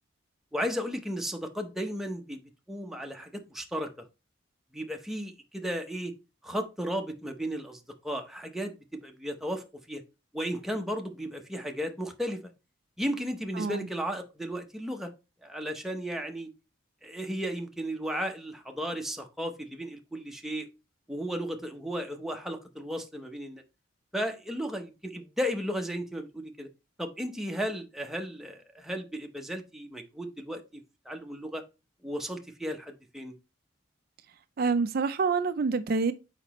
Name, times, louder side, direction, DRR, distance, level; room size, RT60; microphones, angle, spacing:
voice 1, 0.5-2.4 2.7-3.9 4.7-6.1 6.4-10.0 10.3-12.4 13.0-15.1 15.4-16.5 17.0-20.7 21.1-23.6 24.1-26.7 27.0-30.8 31.1-31.6 32.0-33.3, equal, ahead, 0.7 m, -34 dB
voice 2, 13.6-13.9 34.6-36.1, right 4 dB, 50° right, 0.4 m, -27 dB
6.6 x 5.0 x 3.0 m
head